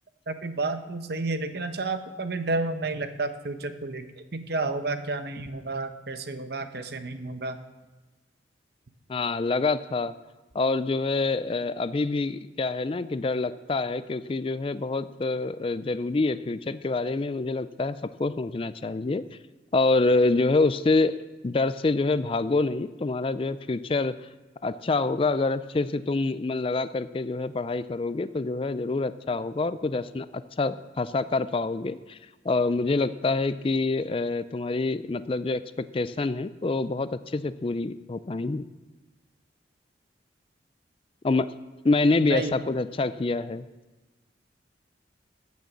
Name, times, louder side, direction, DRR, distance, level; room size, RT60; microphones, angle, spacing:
voice 1, 0.3-7.6 42.2-42.5, right 3 dB, 60° right, 9 dB, 0.9 m, -31 dB
voice 2, 9.1-10.1 10.5-19.4 19.7-21.2 21.4-24.2 24.6-32.2 32.4-38.7 41.2-41.5 41.8-43.6, left 3 dB, 30° left, 14 dB, 0.4 m, -26 dB
15.5 x 6.3 x 6.8 m, 1.2 s
head